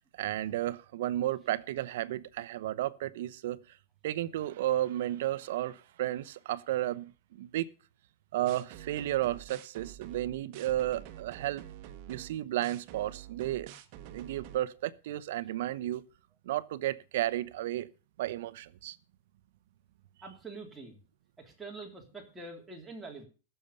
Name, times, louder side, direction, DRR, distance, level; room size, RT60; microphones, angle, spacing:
voice 1, 0.2-3.6 4.0-7.7 8.3-11.7 12.1-13.7 14.0-16.0 16.4-17.9 18.2-19.0, right 13 dB, 65° right, 0.9 m, -33 dB
sound 1, 8.5-14.6, right 11 dB, 45° right, 1.4 m, -48 dB
voice 2, 20.2-21.0 21.4-23.2, right 3 dB, 5° right, 3.2 m, -45 dB
16.0 x 6.9 x 6.9 m
supercardioid pair, 160°, 0 cm